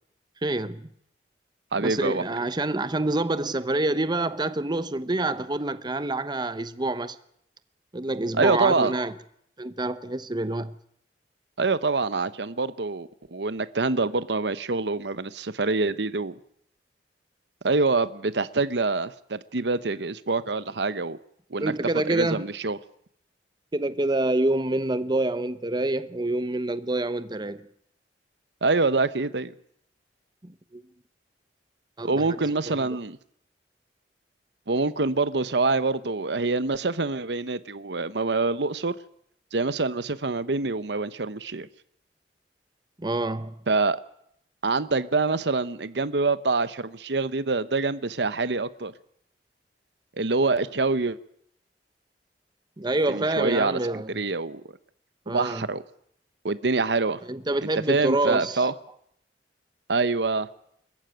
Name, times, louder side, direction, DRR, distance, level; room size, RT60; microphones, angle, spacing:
voice 1, 0.4-0.9 1.8-7.2 7.9-9.1 9.6-10.7 21.6-22.4 23.7-27.7 30.4-30.8 32.0-32.4 32.7-32.9 43.0-43.6 52.8-54.1 55.3-55.6 57.3-58.7, right 2 dB, 25° right, 1.0 m, -27 dB
voice 2, 1.7-2.2 8.4-8.9 11.6-16.4 17.6-21.2 21.5-21.7 22.1-22.8 28.6-29.5 32.0-33.2 34.7-38.9 39.5-41.7 43.7-44.0 44.6-48.9 50.2-51.2 53.1-53.8 54.1-54.6 55.3-55.8 56.4-57.2 57.6-58.7 59.9-60.5, right 3 dB, 70° right, 1.0 m, -25 dB
25.5 x 14.5 x 9.2 m
head